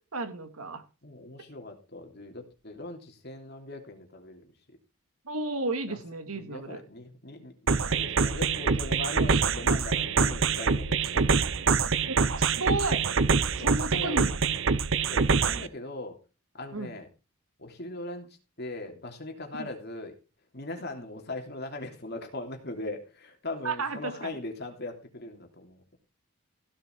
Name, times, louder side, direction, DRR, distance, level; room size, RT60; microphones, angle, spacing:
voice 1, 0.1-0.8 5.3-6.8 12.1-13.0 13.6-14.4 16.7-17.0 19.5-19.7 23.6-24.4, right 2 dB, 80° right, 8 dB, 2.3 m, -33 dB
voice 2, 1.0-4.5 5.9-6.0 6.3-7.5 7.9-11.3 13.6-14.2 14.5-14.6 15.1-16.2 16.5-17.1 17.6-18.3 18.6-20.1 20.5-26.0, left 2 dB, 45° left, 4 dB, 3.1 m, -40 dB
sound 1, 7.7-15.7, right 5 dB, 60° right, 0.7 m, -25 dB
16.0 x 7.4 x 4.6 m, 0.31 s
head